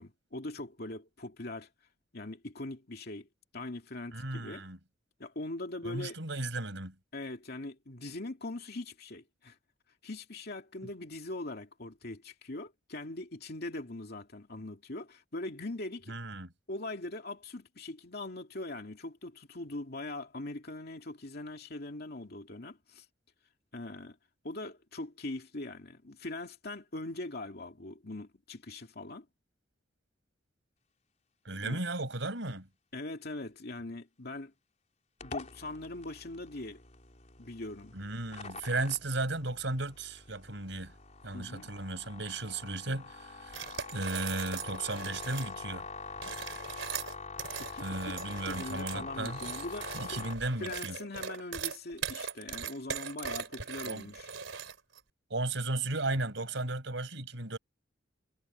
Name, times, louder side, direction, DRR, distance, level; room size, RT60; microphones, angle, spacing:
voice 1, 0.0-1.7 2.1-3.3 3.5-4.7 5.2-6.2 7.1-9.6 10.0-16.1 16.7-23.0 23.7-24.2 24.4-29.3 31.6-31.8 32.9-34.5 35.2-36.8 37.4-37.9 41.3-41.7 47.6-48.2 48.4-50.2 50.6-54.3, left 2 dB, 55° left, 2.6 m, -41 dB
voice 2, 4.1-4.8 5.8-6.9 16.1-16.5 31.4-32.7 37.9-40.9 41.2-43.6 43.9-45.8 47.8-49.4 49.9-51.0 53.8-54.1 55.3-57.6, right 2 dB, 70° right, 6.1 m, -35 dB
sound 1, 35.2-50.3, left 4 dB, 40° left, 4.1 m, -45 dB
sound 2, 43.5-45.5 46.1-55.0, right 7 dB, 85° right, 3.5 m, -40 dB
head